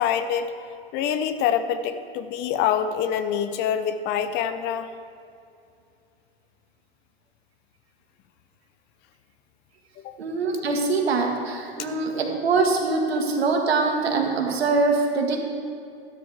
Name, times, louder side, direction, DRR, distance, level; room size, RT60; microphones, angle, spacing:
voice 1, 0.0-4.9 10.0-10.1, left 8 dB, 35° left, 10 dB, 0.7 m, -25 dB
voice 2, 10.2-15.4, right 3 dB, 80° right, 2 dB, 1.9 m, -23 dB
13.0 x 12.0 x 3.5 m, 2.5 s
hypercardioid pair, 110°, 31 cm